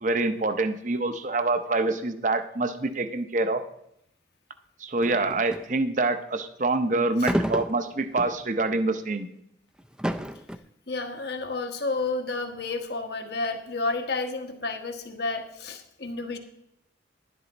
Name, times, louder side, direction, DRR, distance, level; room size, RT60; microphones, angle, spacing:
voice 1, 0.0-3.6 4.8-9.3, right 2 dB, 40° right, 9 dB, 0.7 m, -26 dB
sound 1, 5.0-5.7 7.2-8.4 9.0-9.1 9.8-10.6, equal, 5° right, 0.4 m, -30 dB
voice 2, 10.9-16.4, left 3 dB, 65° left, 5 dB, 1.3 m, -31 dB
11.0 x 11.0 x 4.1 m, 0.76 s
head